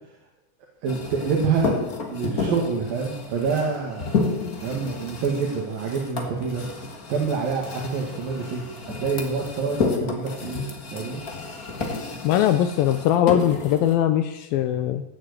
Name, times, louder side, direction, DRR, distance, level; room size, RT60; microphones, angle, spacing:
sound 1, 0.8-13.9, left 4 dB, 40° left, 1.3 m, -31 dB
voice 1, 0.8-6.7 7.1-10.7 10.9-11.2, right 5 dB, 70° right, -2 dB, 3.7 m, -27 dB
voice 2, 12.2-15.0, left 11 dB, 80° left, 9 dB, 2.4 m, -21 dB
16.0 x 7.7 x 8.2 m, 0.98 s
omnidirectional pair, 4.3 m